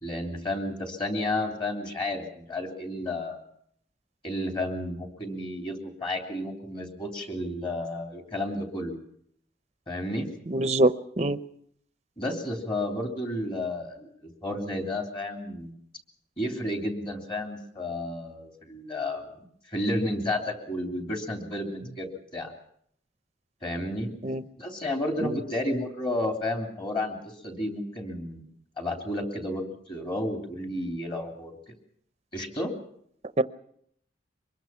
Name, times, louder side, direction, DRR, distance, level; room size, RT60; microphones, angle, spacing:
voice 1, 0.0-3.4 4.2-9.0 9.9-10.3 12.2-15.7 16.4-19.3 19.7-22.5 23.6-24.1 24.6-27.2 27.4-28.5 28.8-31.5 32.3-32.7, left 1 dB, 25° left, 3 dB, 3.2 m, -32 dB
voice 2, 10.5-11.4 24.2-24.4 25.2-25.4 33.4-33.5, right 2 dB, 35° right, 12 dB, 0.8 m, -24 dB
24.0 x 21.5 x 5.9 m, 0.69 s
head